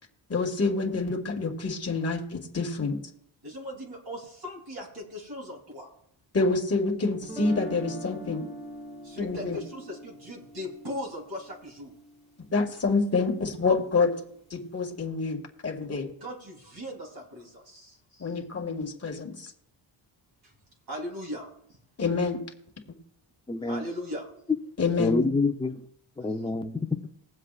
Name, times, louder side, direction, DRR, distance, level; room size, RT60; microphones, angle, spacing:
voice 1, 0.3-3.0 6.3-8.5 9.2-9.6 12.5-14.1 14.5-16.1 18.2-19.5 22.0-22.4 24.8-25.2, left 4 dB, 30° left, 1 dB, 2.1 m, -27 dB
voice 2, 3.4-5.9 9.0-12.0 16.2-18.3 20.4-20.5 20.9-21.8 23.6-24.3, left 1 dB, 50° right, -2 dB, 3.7 m, -39 dB
Guitar, 7.2-13.2, right 1 dB, 15° right, 2.4 m, -43 dB
voice 3, 23.5-23.8 25.0-25.9 26.2-27.0, left 3 dB, 10° left, 6 dB, 0.8 m, -27 dB
21.0 x 7.6 x 2.5 m, 0.72 s
cardioid pair, 100°, 49 cm